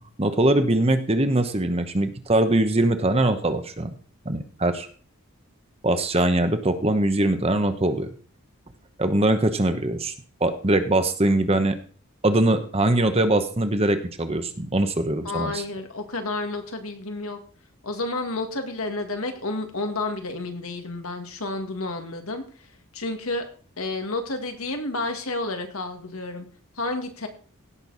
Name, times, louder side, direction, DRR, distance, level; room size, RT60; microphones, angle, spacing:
voice 1, 0.2-3.9 4.2-4.9 5.8-8.1 9.0-10.1 10.4-11.8 12.2-15.6, right 1 dB, 25° right, 8 dB, 1.0 m, -22 dB
voice 2, 15.2-17.4 17.8-22.7 22.9-23.4 23.8-26.5 26.8-27.3, left 2 dB, 75° left, 5 dB, 1.9 m, -30 dB
17.0 x 6.8 x 4.1 m, 0.41 s
head